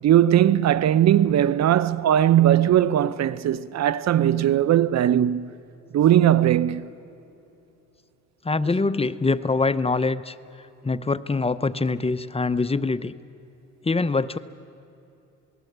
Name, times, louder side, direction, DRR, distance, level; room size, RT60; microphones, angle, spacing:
voice 1, 0.0-5.5 5.9-6.9, right 11 dB, 60° right, 0.8 m, -19 dB
voice 2, 8.4-10.3 10.8-13.1 13.8-14.4, left 3 dB, 20° left, 0.8 m, -24 dB
27.5 x 20.0 x 8.1 m
cardioid pair, 90°, 30 cm